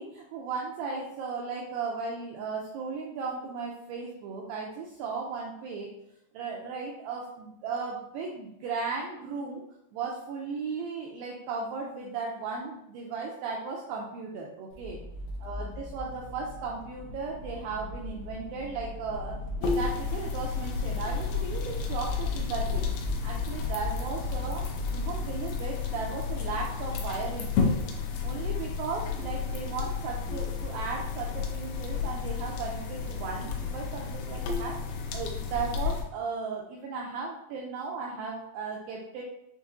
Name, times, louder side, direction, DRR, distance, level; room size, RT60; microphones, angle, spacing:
voice 1, 0.0-5.9 6.3-9.6 9.9-15.0 15.4-22.8 23.2-27.8 28.2-34.8 35.1-39.2, right 4 dB, 85° right, -2 dB, 2.1 m, -36 dB
Accelerating revving vroom, 14.7-25.2, left 2 dB, 70° left, 2.5 m, -37 dB
sound 1, 19.6-36.0, left 5 dB, 90° left, 2.0 m, -32 dB
6.4 x 2.7 x 2.5 m, 0.80 s
omnidirectional pair, 4.6 m